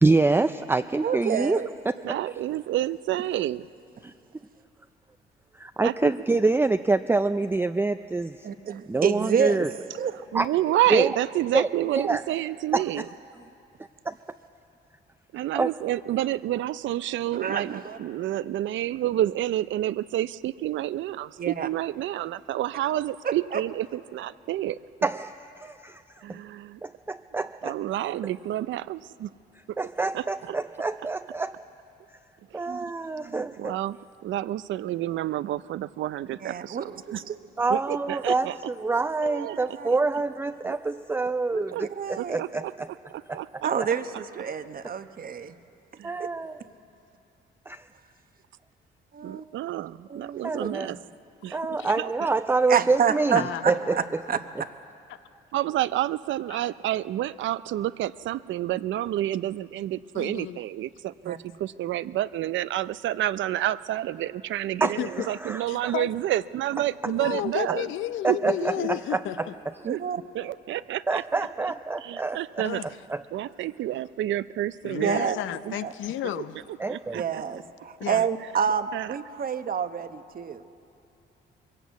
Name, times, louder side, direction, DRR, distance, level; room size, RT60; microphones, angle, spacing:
voice 1, 0.0-2.0 4.0-4.1 5.5-8.5 8.9-9.7 10.3-10.5 10.9-11.1 11.5-11.7 11.9-12.2 12.7-12.8 14.0-14.2 15.5-15.7 25.0-26.4 26.8-27.8 29.8-31.6 32.5-33.7 37.6-42.9 43.3-43.4 43.8-43.9 46.0-46.6 47.7-47.9 50.4-51.0 51.5-54.2 54.6-54.7 64.8-65.9 68.2-69.5 71.1-72.4 73.1-73.2 76.8-77.2, right 3 dB, 10° right, 9 dB, 0.4 m, -26 dB
voice 2, 1.0-1.7 8.4-9.7 10.0-10.1 17.4-18.0 21.4-21.7 23.2-23.6 32.7-32.8 33.2-33.4 36.4-37.4 39.4-39.9 41.5-41.6 42.0-42.4 43.6-45.5 46.2-46.3 49.1-49.4 50.1-50.7 52.7-53.4 54.0-54.1 54.3-54.4 61.2-61.4 69.8-70.2 75.0-75.4 75.8-75.9 77.1-80.6, right 7 dB, 45° right, 10 dB, 1.0 m, -28 dB
voice 3, 2.0-3.7 5.8-6.3 9.9-13.1 15.3-24.8 26.2-26.8 27.6-29.3 29.7-29.8 30.1-30.6 32.5-32.7 33.6-37.2 37.7-38.7 39.2-40.0 40.6-40.7 41.7-41.9 42.2-42.7 43.1-44.2 46.0-46.2 49.2-51.1 51.4-52.3 55.5-67.9 68.3-68.9 69.8-70.0 70.3-73.0 73.3-75.8 76.2-77.4 78.2-79.2, right 13 dB, 75° right, 16 dB, 0.5 m, -30 dB
voice 4, 53.3-53.8 55.1-55.2 56.5-56.6 60.1-60.6 65.0-65.3 65.7-66.1 67.0-69.4 72.6-72.9 74.8-76.6 78.0-78.2, left 12 dB, 80° left, 13 dB, 0.7 m, -32 dB
22.0 x 16.5 x 8.2 m, 2.7 s
cardioid pair, 90°, 20 cm